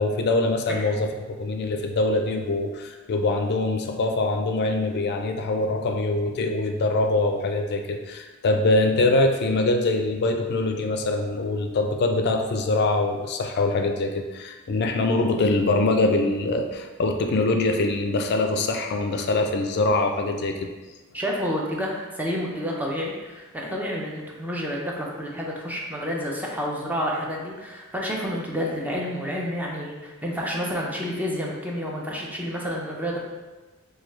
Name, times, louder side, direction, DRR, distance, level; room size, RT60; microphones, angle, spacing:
voice 1, 0.0-20.6, left 2 dB, 50° left, 5 dB, 0.4 m, -23 dB
voice 2, 21.1-33.2, equal, 10° right, -3 dB, 0.5 m, -29 dB
4.6 x 2.3 x 3.1 m, 1.2 s
head